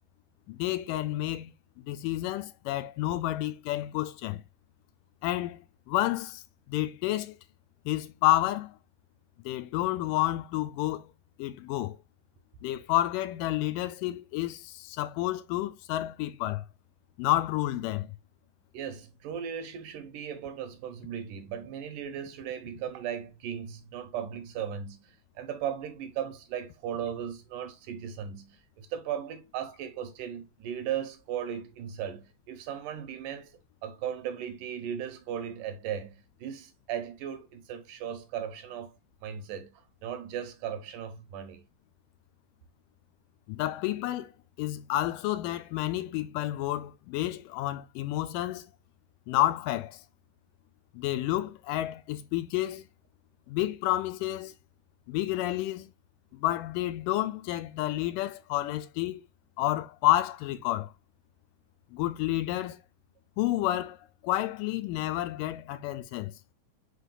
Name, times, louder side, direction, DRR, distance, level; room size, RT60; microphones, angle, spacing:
voice 1, 0.5-1.5 1.9-4.4 5.2-7.4 7.9-8.8 9.5-11.1 11.4-12.0 12.6-16.6 17.2-18.1 43.5-44.3 44.6-48.7 49.3-50.0 50.9-52.9 53.5-54.6 55.1-55.9 56.3-59.2 59.6-60.9 61.9-62.8 63.4-66.3, left 15 dB, 80° left, 2.1 m, -30 dB
voice 2, 18.7-38.9 39.2-41.6, right 9 dB, 80° right, 2.1 m, -37 dB
5.1 x 4.2 x 2.2 m
omnidirectional pair, 3.8 m